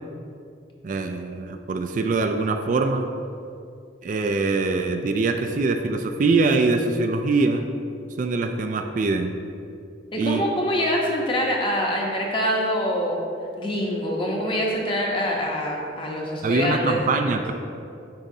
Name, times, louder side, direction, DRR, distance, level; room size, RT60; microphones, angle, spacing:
voice 1, 0.8-3.1 4.0-7.6 8.2-9.4 10.2-10.4 16.4-17.5, right 3 dB, 45° right, 6 dB, 0.3 m, -23 dB
voice 2, 10.1-13.2 13.6-17.5, equal, 30° left, -1 dB, 0.9 m, -25 dB
9.2 x 4.9 x 2.7 m, 2.5 s
head